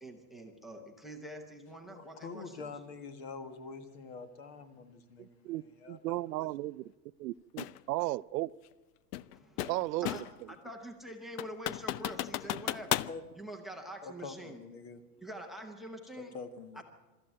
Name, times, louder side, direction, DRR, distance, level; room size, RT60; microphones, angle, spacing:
voice 1, 0.0-2.7 9.3-9.7 10.0-10.2 10.5-12.9 13.4-14.6 15.2-16.3 16.7-16.8, right 1 dB, ahead, 4 dB, 0.8 m, -45 dB
voice 2, 1.9-5.5 5.8-6.5 12.4-12.7 13.0-13.2 14.0-15.0 16.2-16.8, left 4 dB, 40° left, 9 dB, 1.7 m, -46 dB
voice 3, 5.2-6.8 7.2-8.5 9.7-10.1, right 18 dB, 85° right, 18 dB, 0.6 m, -35 dB
sound 1, 7.6-7.8 9.1-10.4 10.8-10.9 11.4-13.2, left 13 dB, 70° left, 0.7 m, -35 dB
24.0 x 13.5 x 9.0 m, 1.2 s
supercardioid pair, 180°, 48 cm